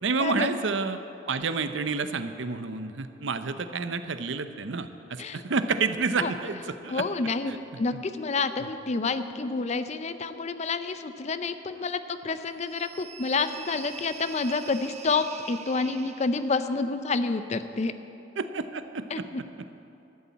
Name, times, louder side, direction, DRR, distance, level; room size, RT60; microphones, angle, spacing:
voice 1, 0.0-1.0 1.3-7.0 7.9-8.0 18.4-19.2, right 4 dB, 85° right, 10 dB, 0.7 m, -29 dB
voice 2, 6.9-17.9 19.1-19.4, left 4 dB, 35° left, 11 dB, 0.5 m, -29 dB
sound 1, 12.6-16.8, right 7 dB, 35° right, 0.6 m, -45 dB
12.5 x 7.0 x 8.3 m, 2.9 s
head